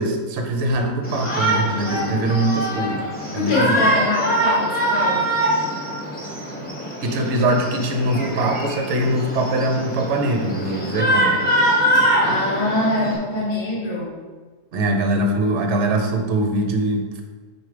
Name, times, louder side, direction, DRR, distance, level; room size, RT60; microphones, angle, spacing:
voice 1, 0.0-3.0 3.3-3.8 7.0-11.4 14.7-17.2, right 1 dB, 55° right, 3 dB, 1.0 m, -22 dB
Shout, 1.0-13.2, right 1 dB, 5° left, 1.1 m, -23 dB
voice 2, 3.4-5.2 11.9-14.1, left 2 dB, 65° left, -5 dB, 2.0 m, -24 dB
4.7 x 4.6 x 5.0 m, 1.4 s
omnidirectional pair, 1.6 m